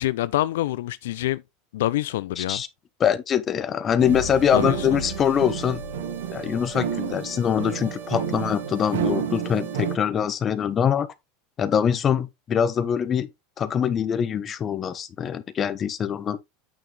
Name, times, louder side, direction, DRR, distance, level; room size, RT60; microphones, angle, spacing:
voice 1, 0.0-1.4 1.7-2.6 4.5-4.8, left 15 dB, 80° left, 0.4 m, -26 dB
voice 2, 2.4-2.7 3.0-5.8 6.3-11.1 11.6-13.3 13.6-16.4, left 8 dB, 30° left, 1.1 m, -23 dB
sound 1, 4.0-10.0, right 7 dB, 85° right, 1.8 m, -30 dB
8.6 x 6.3 x 3.3 m
supercardioid pair, 125°, 0 cm